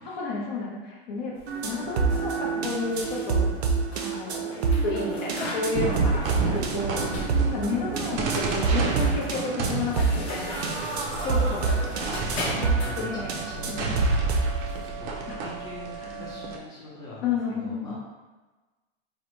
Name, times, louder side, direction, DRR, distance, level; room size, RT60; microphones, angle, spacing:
voice 1, 0.0-1.4 1.6-3.5 4.0-11.8 12.5-13.4 13.7-14.0 15.3-15.4 16.0-16.4 17.2-18.0, left 4 dB, 50° left, -3 dB, 0.6 m, -32 dB
sound 1, 1.3-14.9, left 2 dB, 90° left, 0.8 m, -41 dB
sound 2, 1.5-14.5, right 4 dB, 90° right, 0.5 m, -27 dB
sound 3, 5.7-16.6, right 4 dB, 35° right, 0.4 m, -31 dB
voice 2, 6.3-6.8 10.8-11.4 12.1-12.5 12.8-14.4 14.8-15.1 15.4-18.0, left 2 dB, 10° left, -7 dB, 0.7 m, -43 dB
2.8 x 2.2 x 3.0 m, 1.2 s
hypercardioid pair, 130°, 31 cm